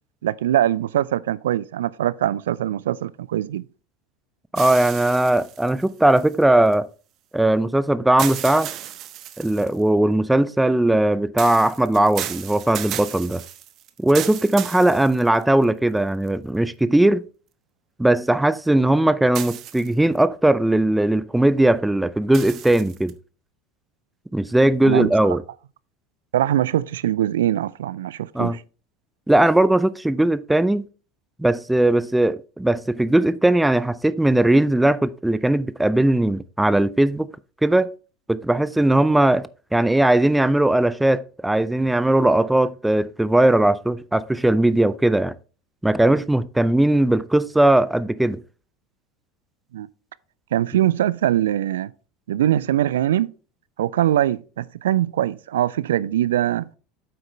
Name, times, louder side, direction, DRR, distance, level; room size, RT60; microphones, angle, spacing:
voice 1, 0.2-3.6 24.8-25.4 26.3-28.6 49.7-49.9 50.5-51.9 52.3-53.3 53.8-56.7, right 12 dB, 70° right, 0.4 m, -22 dB
voice 2, 4.5-6.9 7.3-8.7 9.4-13.4 14.0-17.2 18.0-23.1 24.3-25.4 28.3-28.6 29.3-30.9 31.4-37.3 37.6-37.9 38.3-45.3 45.8-48.4, right 1 dB, 5° right, 0.5 m, -19 dB
sound 1, 4.5-6.7 8.2-9.8 11.4-15.6 16.3-16.4 19.3-20.2 22.3-23.1, right 11 dB, 45° right, 0.9 m, -34 dB
8.9 x 7.8 x 3.2 m
figure-of-eight pair, 75°, 0 cm